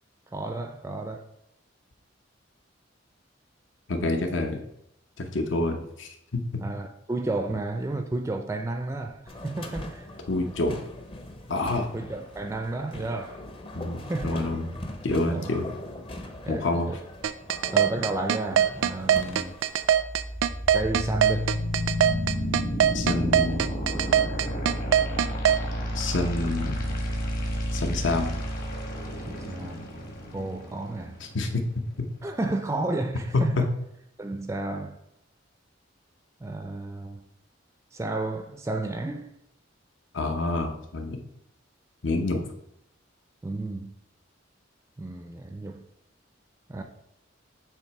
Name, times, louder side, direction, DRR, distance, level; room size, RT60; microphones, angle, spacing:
voice 1, 0.3-1.3 6.6-10.1 11.9-13.4 14.1-14.4 15.3-15.5 16.5-17.0 17.7-19.6 20.7-21.5 29.2-29.8 30.3-31.2 32.2-33.6 34.2-35.0 36.4-37.2 37.9-39.3 43.4-43.9 45.0-45.8 46.7-46.8, right 2 dB, 15° right, 0.4 m, -32 dB
voice 2, 3.9-4.6 5.2-6.6 10.3-10.8 11.5-11.9 13.7-14.7 15.0-15.7 16.5-16.9 22.9-23.6 25.9-26.9 27.7-28.4 31.2-31.6 32.0-32.1 33.3-33.7 40.1-41.2 42.0-42.4, left 2 dB, 70° left, 0.8 m, -27 dB
sound 1, 9.3-19.9, left 1 dB, 30° left, 0.7 m, -41 dB
sound 2, 17.2-25.6, right 9 dB, 85° right, 0.3 m, -21 dB
sound 3, 19.9-31.9, equal, 50° left, 1.3 m, -31 dB
7.1 x 2.9 x 4.6 m
head